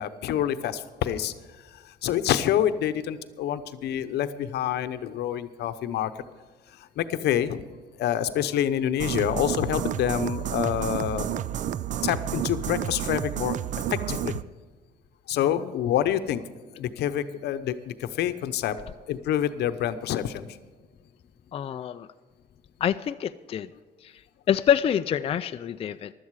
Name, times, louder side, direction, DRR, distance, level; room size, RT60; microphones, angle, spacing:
voice 1, 0.0-1.3 2.0-6.1 7.0-7.6 8.0-11.3 12.0-13.6 13.9-14.3 15.3-16.4 16.8-18.8 19.1-20.5, left 10 dB, 75° left, 11 dB, 0.8 m, -27 dB
sound 1, 9.0-14.4, right 11 dB, 45° right, 0.4 m, -30 dB
voice 2, 15.4-15.7 21.5-22.1 22.8-23.7 24.0-24.2 24.5-26.1, left 9 dB, 35° left, 9 dB, 0.4 m, -26 dB
16.0 x 12.0 x 4.8 m, 1.4 s
cardioid pair, 120°, 17 cm